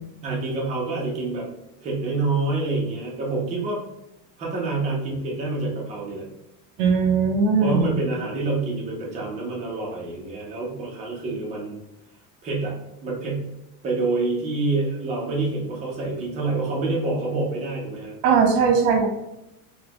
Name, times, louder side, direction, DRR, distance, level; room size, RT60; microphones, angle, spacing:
voice 1, 0.2-1.5 1.8-3.8 4.4-6.3 7.6-11.8 12.4-12.8 13.0-13.5 13.8-18.1, right 3 dB, 20° right, -3 dB, 0.3 m, -27 dB
voice 2, 6.8-8.0 18.2-19.1, right 5 dB, 70° right, 4 dB, 0.9 m, -19 dB
4.0 x 2.1 x 2.8 m, 0.90 s
cardioid pair, 160°, 46 cm